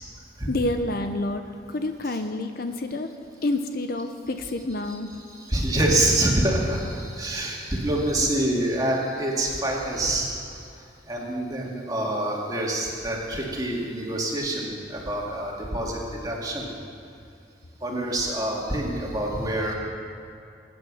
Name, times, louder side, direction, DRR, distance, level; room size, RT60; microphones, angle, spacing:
voice 1, 0.5-3.1 3.4-5.1, left 2 dB, 55° left, 7 dB, 0.7 m, -28 dB
voice 2, 5.3-16.7 17.8-19.7, right 1 dB, 20° right, -2 dB, 2.5 m, -26 dB
22.0 x 9.5 x 6.4 m, 2.5 s
head